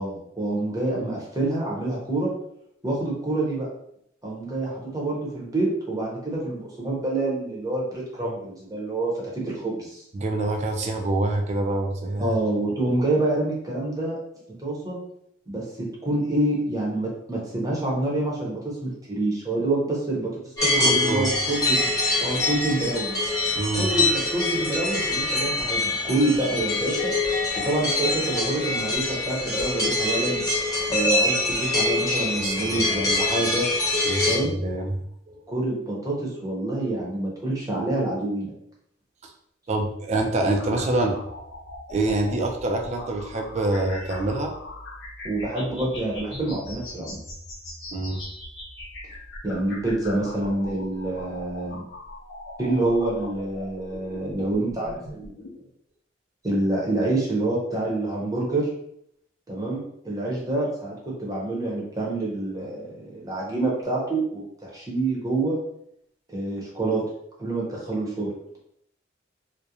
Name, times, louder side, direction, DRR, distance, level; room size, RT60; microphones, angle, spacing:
voice 1, 0.0-2.3 2.8-3.7 4.2-9.1 9.4-10.0 12.2-14.2 14.6-15.0 15.5-20.3 20.6-21.9 22.2-23.3 23.8-27.1 27.6-30.4 30.9-33.6 34.2-34.5 35.5-38.5 45.2-47.2 49.4-51.8 52.6-55.4 56.4-58.7 59.5-65.6 66.3-67.0 67.4-68.3, right 2 dB, 20° right, -4 dB, 0.7 m, -27 dB
voice 2, 10.1-12.4 20.7-21.3 23.6-23.9 32.4-33.1 34.1-35.4 39.2-39.3 39.7-41.2 41.9-44.5 47.9-48.2, right 2 dB, 35° right, 3 dB, 0.3 m, -26 dB
sound 1, 20.6-34.4, left 2 dB, 20° left, 0.7 m, -24 dB
sound 2, 40.5-55.5, left 1 dB, 70° left, 0.7 m, -40 dB
2.3 x 2.1 x 2.8 m, 0.72 s
head